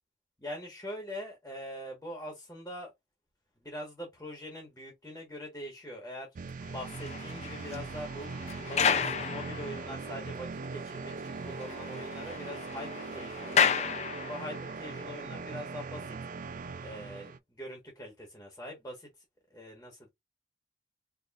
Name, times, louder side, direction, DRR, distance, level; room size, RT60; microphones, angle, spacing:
voice 1, 0.4-2.9 3.6-6.3 6.7-8.3 8.6-16.2 16.8-19.2 19.5-20.1, equal, 15° left, 1.4 m, -43 dB
sound 1, 6.4-17.4, right 4 dB, 45° right, 0.4 m, -40 dB
sound 2, 6.6-10.1 10.6-10.7 11.1-11.2 11.5-14.7, left 7 dB, 40° left, 0.4 m, -32 dB
4.4 x 3.1 x 2.4 m
head